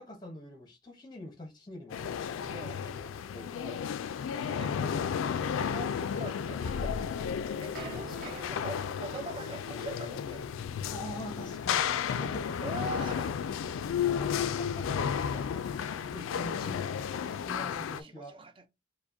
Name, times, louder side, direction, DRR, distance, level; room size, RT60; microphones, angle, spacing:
voice 1, 0.0-2.4 2.7-2.9 3.3-3.7 8.0-8.4 10.9-12.7 14.2-18.4, left 1 dB, 20° left, 0.6 m, -45 dB
sound 1, 1.9-18.0, left 7 dB, 90° left, 0.3 m, -33 dB
voice 2, 2.4-2.8 3.6-3.8 4.4-4.7 5.5-7.1 7.6-10.4 12.1-12.2 12.6-13.4 18.0-18.7, right 2 dB, 25° right, 0.4 m, -43 dB
sound 2, 7.0-11.9, right 3 dB, 45° right, 1.1 m, -49 dB
4.6 x 2.1 x 2.5 m
head